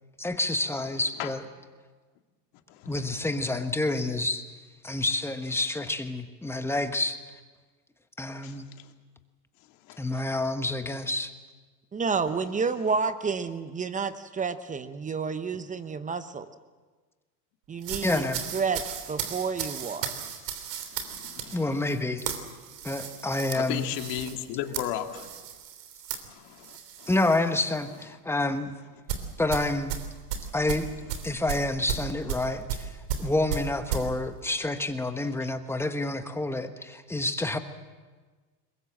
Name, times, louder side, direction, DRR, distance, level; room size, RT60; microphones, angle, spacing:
voice 1, 0.2-1.4 2.9-4.4 4.8-7.2 8.2-8.7 10.0-11.3 18.0-18.4 21.5-22.3 22.8-23.9 27.1-28.7 29.4-30.0 30.5-30.9 31.2-37.6, left 2 dB, 5° left, 8 dB, 1.2 m, -28 dB
voice 2, 2.7-3.2 8.4-8.9 9.9-10.0 17.9-18.0 20.2-20.3 20.9-21.8 23.5-25.3 26.3-27.1 33.2-33.3, left 11 dB, 55° left, 5 dB, 2.2 m, -36 dB
voice 3, 11.9-16.5 17.7-18.2 18.5-20.1, right 5 dB, 15° right, 12 dB, 0.8 m, -30 dB
sound 1, 17.8-27.4 27.7-28.0 29.1-34.1, right 8 dB, 75° right, 3.4 m, -35 dB
22.5 x 21.0 x 7.5 m, 1.4 s
supercardioid pair, 125°, 48 cm